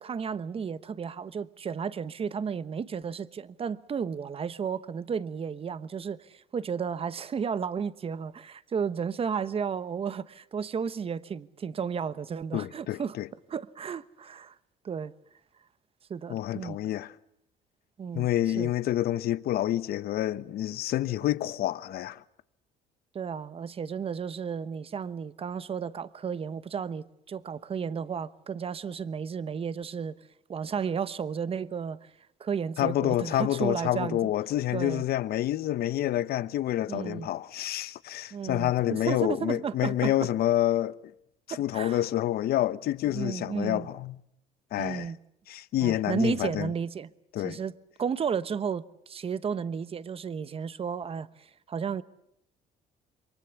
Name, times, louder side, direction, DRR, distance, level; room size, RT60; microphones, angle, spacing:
voice 1, 0.0-13.2 13.5-14.6 14.8-15.1 16.1-16.8 18.0-18.3 18.6-18.7 23.1-30.1 30.5-32.1 32.4-34.3 34.7-35.0 36.9-37.3 38.3-40.1 41.5-42.0 43.1-43.9 44.8-45.2 45.8-47.1 47.4-47.7 48.0-52.0, right 6 dB, 35° right, 1.0 m, -33 dB
voice 2, 12.5-13.3 16.3-17.1 18.1-22.2 32.8-41.0 41.5-44.2 44.7-45.1 45.5-46.7 47.3-47.6, left 13 dB, 65° left, 1.0 m, -28 dB
28.0 x 23.5 x 7.2 m
cardioid pair, 110°, 17 cm